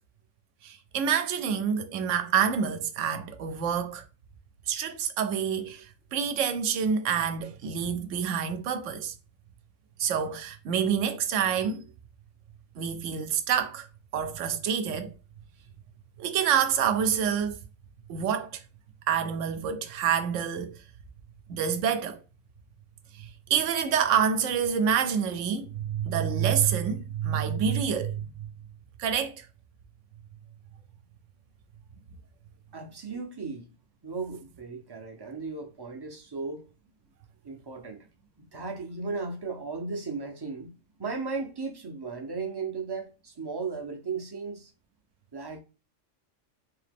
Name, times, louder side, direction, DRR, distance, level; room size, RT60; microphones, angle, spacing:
voice 1, 0.6-4.0 4.7-9.1 10.0-11.8 12.8-13.9 14.1-15.1 16.2-17.6 18.1-18.6 19.1-20.8 21.5-22.2 23.2-28.3 29.0-29.5, right 7 dB, 80° right, 0.9 m, -27 dB
voice 2, 32.7-33.7 34.0-36.7 37.4-38.0 38.5-40.7 41.0-44.7 45.3-45.6, right 4 dB, 35° right, 0.4 m, -36 dB
3.7 x 2.8 x 3.4 m
omnidirectional pair, 1.3 m